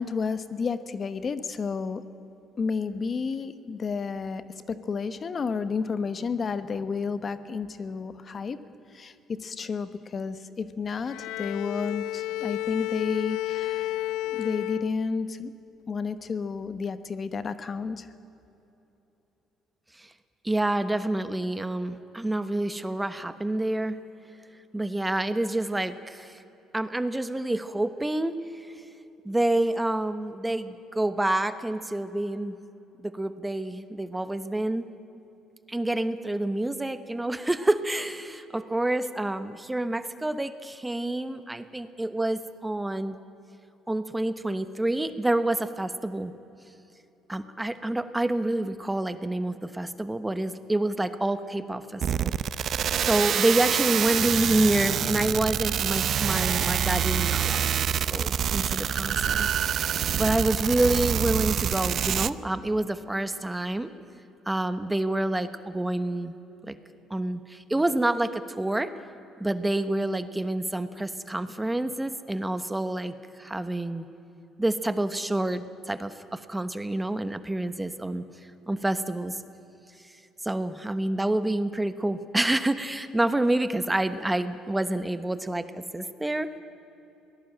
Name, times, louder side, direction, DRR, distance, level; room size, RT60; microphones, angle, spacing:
voice 1, 0.0-2.0 2.6-4.4 4.7-8.6 8.9-9.1 9.4-14.0 14.2-15.5 15.9-18.1, left 5 dB, 40° left, 12 dB, 1.2 m, -31 dB
Bowed string instrument, 11.0-15.5, left 16 dB, 85° left, 0.4 m, -32 dB
voice 2, 20.4-24.0 24.7-26.4 26.7-28.8 29.2-32.6 33.0-34.9 35.7-43.2 43.9-46.3 47.3-52.3 53.0-59.5 60.1-63.9 64.5-66.3 66.6-66.8 67.1-68.9 69.4-74.1 74.6-78.2 78.7-79.3 80.0-80.1 80.4-86.5, right 1 dB, 10° right, 12 dB, 1.1 m, -28 dB
sound 1, 52.0-62.3, right 9 dB, 55° right, 0.6 m, -26 dB
22.5 x 18.5 x 9.0 m, 3.0 s
cardioid pair, 95°, 0 cm